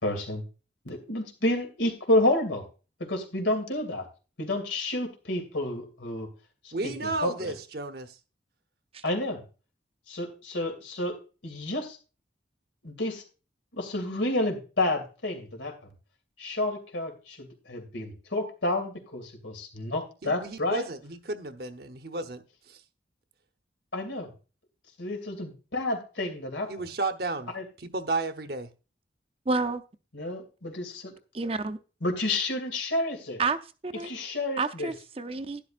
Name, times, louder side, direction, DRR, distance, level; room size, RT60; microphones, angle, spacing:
voice 1, 0.0-0.4 0.8-2.6 3.0-4.1 4.4-6.3 6.6-7.6 9.0-9.4 10.1-11.2 11.4-12.0 12.8-13.2 13.7-15.7 16.4-20.8 23.9-24.3 25.0-26.7 27.5-27.6 30.1-31.1 32.0-33.4 34.0-34.9, left 1 dB, 90° left, 2.7 m, -30 dB
voice 2, 6.7-8.1 20.2-22.8 26.7-27.5 27.8-28.7, right 2 dB, 55° right, 0.9 m, -33 dB
voice 3, 29.5-29.8 31.3-31.8 33.4-33.6 33.8-34.1 34.6-35.6, right 3 dB, 30° right, 0.6 m, -29 dB
12.0 x 10.5 x 2.5 m
head